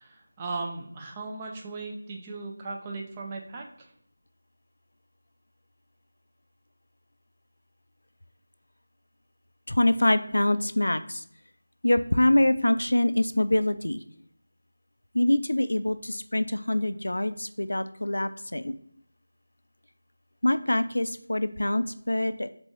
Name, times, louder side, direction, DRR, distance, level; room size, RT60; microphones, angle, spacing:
voice 1, 0.0-3.7, right 3 dB, 20° right, 1 dB, 0.5 m, -37 dB
voice 2, 9.7-11.2 11.8-14.0 15.1-18.7 20.4-22.5, left 1 dB, 80° left, 11 dB, 0.3 m, -25 dB
4.0 x 3.7 x 3.0 m, 0.65 s
figure-of-eight pair, 170°, 0 cm